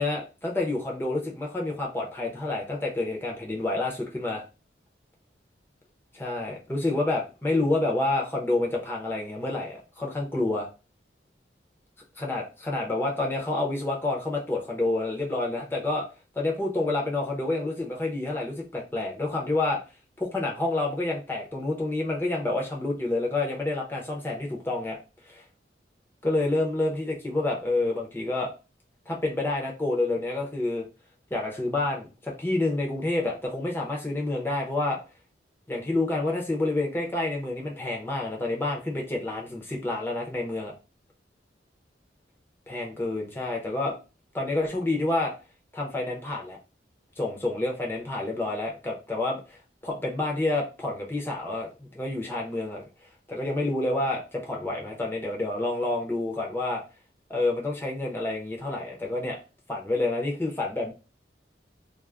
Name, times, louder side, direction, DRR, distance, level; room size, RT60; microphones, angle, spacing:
voice 1, 0.0-4.4 6.1-10.7 12.2-16.0 16.4-19.8 20.2-25.0 25.3-25.4 26.2-28.5 29.1-30.9 31.3-35.0 35.7-40.7 42.7-43.9 44.3-45.3 45.7-46.6 47.2-49.6 49.8-52.8 53.3-56.8 57.3-59.4 59.7-60.9, left 2 dB, 10° left, -2 dB, 0.6 m, -28 dB
2.4 x 2.0 x 3.2 m, 0.32 s
head